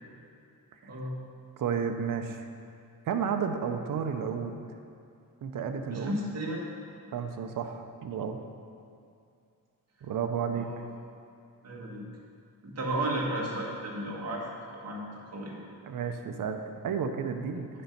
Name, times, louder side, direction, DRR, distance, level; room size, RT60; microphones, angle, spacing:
voice 1, 0.8-1.1 5.9-6.6 10.5-10.8 11.6-12.1 12.6-14.4 14.7-15.6, right 1 dB, 50° right, -3 dB, 1.7 m, -33 dB
voice 2, 1.6-2.5 3.1-4.6 5.4-6.2 7.1-8.4 10.0-10.7 15.8-17.7, right 6 dB, 70° right, 6 dB, 0.7 m, -32 dB
8.5 x 5.3 x 5.9 m, 2.5 s
wide cardioid pair, 150°, 34 cm